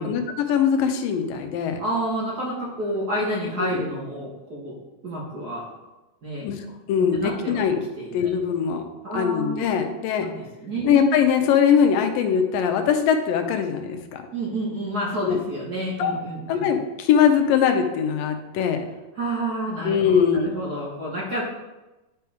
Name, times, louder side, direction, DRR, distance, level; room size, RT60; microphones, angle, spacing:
voice 1, 0.0-1.8 3.6-3.8 6.4-6.6 6.9-7.8 8.1-8.8 9.1-10.3 10.8-14.2 15.3-15.4 16.0-16.1 16.5-18.8 19.8-20.5, left 7 dB, 85° left, 6 dB, 2.5 m, -21 dB
voice 2, 1.8-4.7 5.0-5.6 6.2-6.4 7.1-7.6 8.0-8.3 9.0-9.8 10.2-11.1 14.3-16.7 19.2-21.4, right 1 dB, 55° right, -5 dB, 1.1 m, -29 dB
11.5 x 4.5 x 3.6 m, 1.1 s
omnidirectional pair, 3.9 m